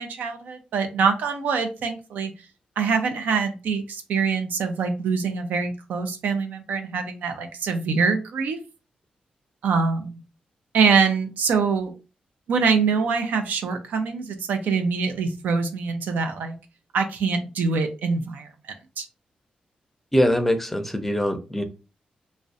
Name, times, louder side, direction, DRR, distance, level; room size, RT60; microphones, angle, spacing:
voice 1, 0.0-2.3 2.8-8.6 9.6-10.2 10.7-11.9 12.5-16.6 16.9-18.5 19.0-19.1, right 5 dB, 85° right, 0.4 m, -24 dB
voice 2, 20.1-21.6, equal, 10° left, 0.5 m, -22 dB
2.3 x 2.1 x 2.5 m
cardioid pair, 60°, 3 cm